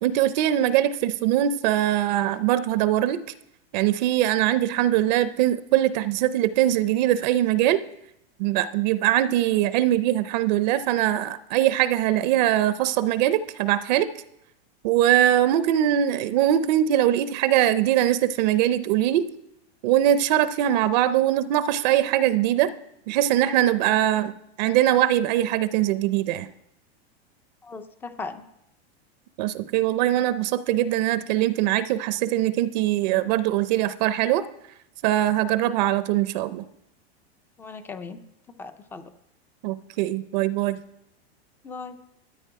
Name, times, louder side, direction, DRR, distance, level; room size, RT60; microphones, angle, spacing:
voice 1, 0.0-3.2 3.7-7.8 8.4-14.1 14.8-19.3 19.8-22.7 23.1-26.5 29.4-34.4 35.0-36.6 39.6-40.8, right 12 dB, 45° right, 14 dB, 0.5 m, -22 dB
voice 2, 27.6-28.4 37.6-38.2 38.6-39.1 41.6-42.0, left 4 dB, 5° left, 11 dB, 0.3 m, -37 dB
12.5 x 9.9 x 4.7 m, 0.82 s
supercardioid pair, 150°, 32 cm